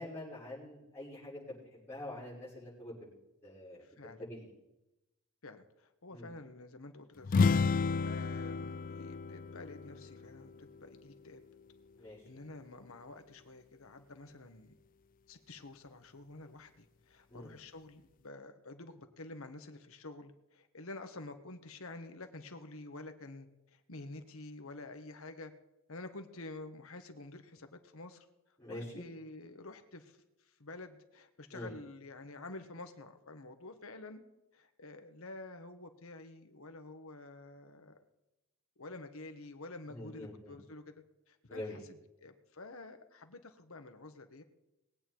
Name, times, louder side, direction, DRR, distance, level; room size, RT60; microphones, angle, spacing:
voice 1, 0.0-3.1 3.4-4.5 6.1-6.3 11.9-12.2 17.3-17.5 28.6-29.0 31.5-31.7 39.9-40.5 41.5-41.8, left 1 dB, 10° left, -11 dB, 6.1 m, -45 dB
voice 2, 3.8-4.3 5.4-7.5 7.7-11.4 12.2-14.7 15.3-25.5 25.9-30.2 30.4-34.2 34.5-37.9 38.8-40.9 41.3-44.4, left 2 dB, 75° left, 7 dB, 1.4 m, -49 dB
sound 1, 7.2-11.0, left 4 dB, 40° left, 0.3 m, -31 dB
20.5 x 8.8 x 4.6 m, 0.94 s
head